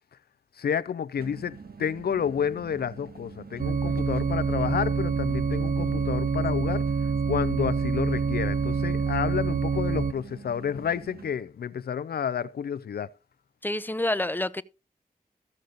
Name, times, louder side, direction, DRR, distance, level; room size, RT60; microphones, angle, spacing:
voice 1, 0.6-6.9 7.3-13.1, left 8 dB, 85° left, 0.5 m, -30 dB
sound 1, 1.2-11.3, right 5 dB, 75° right, 1.5 m, -45 dB
sound 2, 3.6-10.1, right 5 dB, 60° right, 0.6 m, -26 dB
voice 2, 13.6-14.6, left 1 dB, 10° left, 0.6 m, -28 dB
14.5 x 6.5 x 3.9 m
cardioid pair, 55°, 16 cm